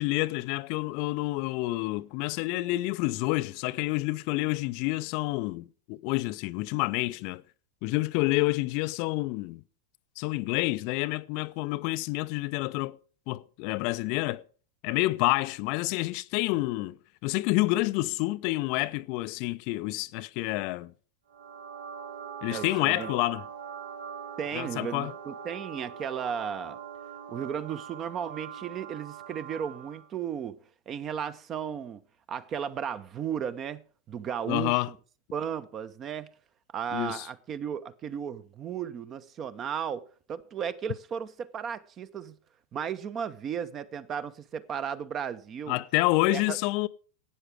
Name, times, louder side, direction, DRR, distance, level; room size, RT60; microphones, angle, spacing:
voice 1, 0.0-7.4 7.8-9.6 10.2-13.0 13.3-14.4 14.8-20.9 22.4-23.4 24.5-25.1 34.5-34.9 36.9-37.3 45.7-46.9, left 20 dB, 45° left, 0.4 m, -28 dB
sound 1, 21.3-30.1, right 7 dB, 70° right, 1.8 m, -42 dB
voice 2, 22.5-23.1 24.4-26.8 27.3-30.6 30.9-32.0 32.3-33.8 34.1-34.8 35.3-36.3 36.7-42.3 42.7-45.8 46.3-46.6, right 8 dB, 30° right, 0.8 m, -35 dB
12.5 x 8.9 x 4.9 m
figure-of-eight pair, 90°, 0 cm